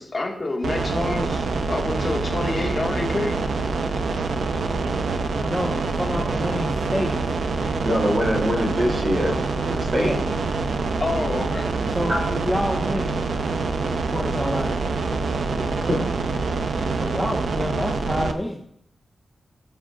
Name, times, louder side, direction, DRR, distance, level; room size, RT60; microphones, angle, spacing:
voice 1, 0.0-3.3 11.0-11.7, left 2 dB, 25° left, -1 dB, 1.8 m, -27 dB
sound 1, 0.6-18.3, right 4 dB, 70° right, 0.8 m, -25 dB
voice 2, 5.4-7.3 9.9-10.2 11.9-13.2 13.9-14.9 15.2-15.4 17.0-18.6, equal, ahead, -1 dB, 1.2 m, -28 dB
voice 3, 7.8-9.4 9.7-10.2 12.1-12.2 15.6-16.1, equal, 30° right, -2 dB, 3.1 m, -23 dB
20.0 x 7.1 x 2.5 m, 0.71 s
wide cardioid pair, 150°, 0 cm